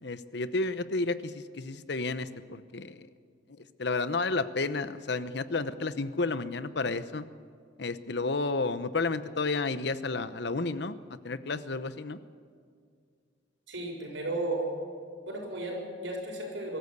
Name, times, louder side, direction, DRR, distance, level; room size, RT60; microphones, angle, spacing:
voice 1, 0.0-3.1 3.8-7.3 7.8-11.0 11.2-12.2, left 3 dB, 60° left, 13 dB, 0.9 m, -31 dB
voice 2, 13.7-14.7 15.2-16.8, right 2 dB, 80° right, 0 dB, 6.7 m, -34 dB
23.5 x 14.0 x 8.3 m, 2.2 s
head